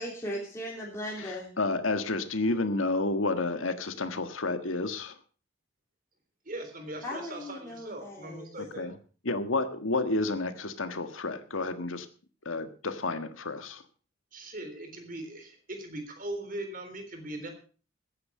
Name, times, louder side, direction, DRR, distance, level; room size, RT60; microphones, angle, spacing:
voice 1, 0.0-1.5 7.0-8.5, equal, 15° left, -3 dB, 3.0 m, -38 dB
voice 2, 1.2-5.2 8.7-8.9 9.2-12.1 12.4-13.8, left 2 dB, 80° left, 9 dB, 1.6 m, -30 dB
voice 3, 6.5-8.9 14.3-17.5, right 1 dB, 45° right, 6 dB, 3.6 m, -40 dB
15.0 x 9.9 x 5.5 m, 0.38 s
head